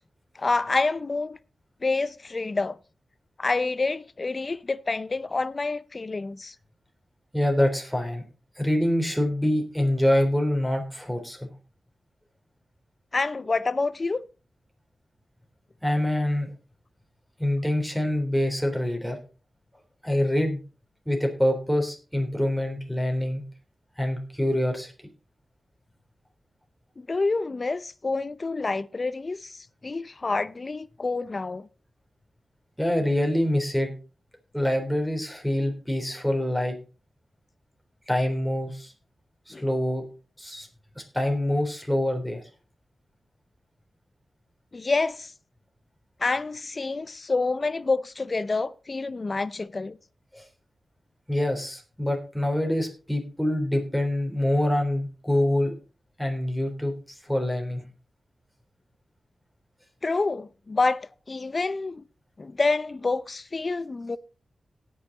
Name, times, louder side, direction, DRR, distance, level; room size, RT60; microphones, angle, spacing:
voice 1, 0.4-1.4 1.8-2.8 3.4-6.5 13.1-14.2 27.0-31.7 39.5-39.6 44.7-45.3 46.2-50.0 60.0-62.0 62.4-64.2, left 3 dB, 40° left, 0.6 m, -28 dB
voice 2, 7.3-8.2 8.6-11.5 15.8-16.5 17.4-19.2 20.0-20.6 21.1-23.4 24.0-24.9 32.8-33.9 34.5-36.7 38.1-38.9 39.5-40.0 40.4-40.7 41.1-42.4 50.3-50.4 51.3-55.7 56.2-56.9 57.3-57.8, left 1 dB, ahead, 3.5 m, -25 dB
17.5 x 6.3 x 4.0 m
wide cardioid pair, 95°, 0 cm